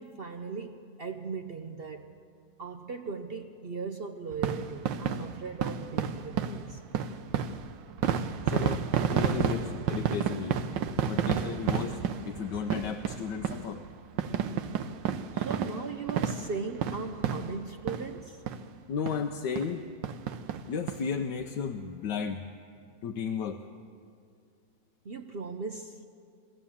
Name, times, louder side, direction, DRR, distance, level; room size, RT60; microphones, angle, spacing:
voice 1, 0.0-2.2 2.6-7.0 15.3-18.4 25.0-26.0, right 5 dB, 55° right, 6 dB, 0.7 m, -38 dB
sound 1, 4.3-18.2 18.5-18.6 19.1-19.2 19.6-19.7 20.0-21.0 21.4-21.5 21.7-21.8, right 8 dB, 90° right, 1.5 m, -31 dB
voice 2, 8.5-8.8 9.1-10.6 11.1-13.8 18.9-19.8 20.7-22.4 23.0-23.6, left 6 dB, 75° left, 4 dB, 1.4 m, -34 dB
23.5 x 16.5 x 7.2 m, 2.3 s
omnidirectional pair, 1.9 m